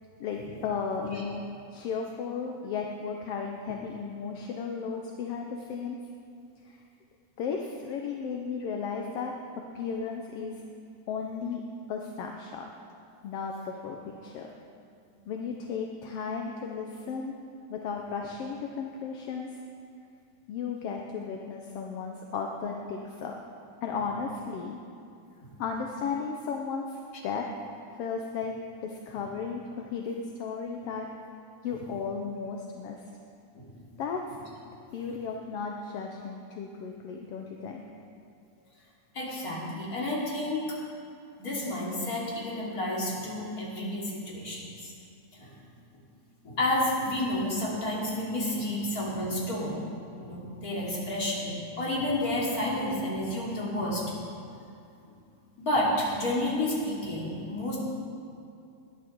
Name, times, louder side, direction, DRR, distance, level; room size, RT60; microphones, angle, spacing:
voice 1, 0.2-1.4 1.7-6.0 6.6-6.8 7.4-9.3 9.7-10.6 11.1-11.6 11.9-12.7 13.2-14.0 14.2-14.5 15.3-17.3 17.7-19.6 20.5-23.4 23.8-24.8 25.6-27.5 28.0-28.5 28.8-31.1 31.6-33.0 34.0-34.2 34.9-37.8, left 5 dB, 70° left, 1 dB, 1.6 m, -34 dB
voice 2, 39.1-40.8 41.4-44.9 45.3-45.5 46.4-49.8 50.2-54.0 55.6-57.8, left 1 dB, 30° left, -6 dB, 3.3 m, -30 dB
19.5 x 11.0 x 4.6 m, 2.5 s
omnidirectional pair, 3.4 m